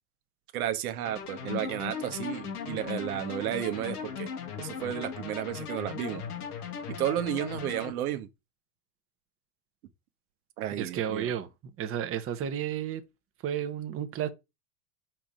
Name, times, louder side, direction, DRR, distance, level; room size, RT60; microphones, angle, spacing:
voice 1, 0.5-4.3 4.6-6.2 7.0-8.3 10.6-11.3, right 12 dB, 75° right, 1.2 m, -32 dB
sound 1, 1.0-7.9, left 7 dB, 90° left, 1.8 m, -38 dB
voice 2, 10.8-11.5 11.8-13.0 13.4-14.3, right 9 dB, 30° right, 1.0 m, -32 dB
5.1 x 4.4 x 6.1 m
hypercardioid pair, 105°, 44 cm